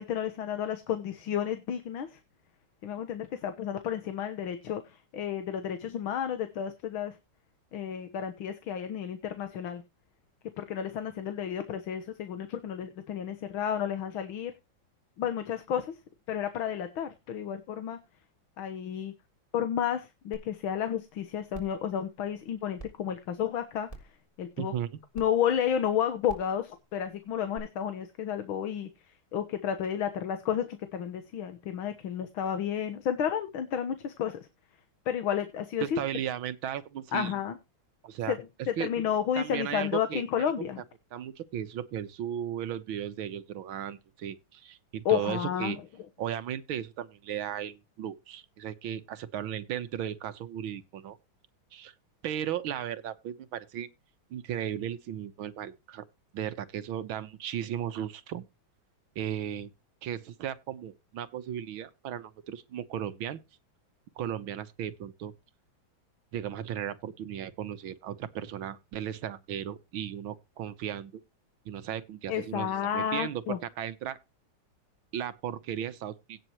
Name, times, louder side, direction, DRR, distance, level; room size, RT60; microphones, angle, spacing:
voice 1, 0.0-2.2 2.8-7.2 7.7-9.8 10.6-14.5 15.2-15.9 16.3-18.0 18.6-19.1 19.5-23.9 24.4-24.7 25.2-28.9 29.3-34.4 35.1-36.0 37.1-37.6 38.3-38.4 38.7-40.8 45.1-45.8 72.3-73.6, left 9 dB, 85° left, 2.0 m, -31 dB
sound 1, 20.3-20.4 20.9-21.0 21.5-21.8 22.8-22.9 23.9-24.2 25.1-25.2 26.2-26.5 27.5-27.6, right 2 dB, 15° left, 3.4 m, -44 dB
voice 2, 24.6-24.9 35.8-37.3 38.0-38.4 38.8-38.9 39.4-40.5 41.1-45.8 46.2-51.2 51.7-51.9 52.2-53.9 54.3-56.0 56.3-58.4 59.2-59.7 60.0-63.4 64.2-65.3 66.3-71.1 71.7-74.2 75.1-76.4, right 10 dB, 85° right, 1.8 m, -36 dB
17.5 x 6.7 x 3.0 m
omnidirectional pair, 2.2 m